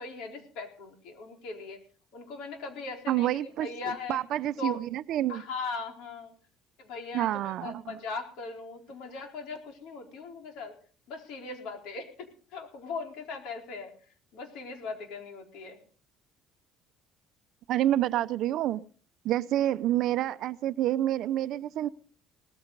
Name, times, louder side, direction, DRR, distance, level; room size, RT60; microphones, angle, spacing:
voice 1, 0.0-1.8 2.1-4.2 4.6-4.8 5.3-6.3 6.8-10.7 11.1-13.9 14.3-15.8, left 4 dB, 70° left, 4.2 m, -39 dB
voice 2, 3.1-5.4 7.1-7.9 17.7-18.8 19.2-21.9, right 13 dB, 55° right, 0.7 m, -28 dB
18.5 x 14.5 x 4.0 m
cardioid pair, 155°, 0 cm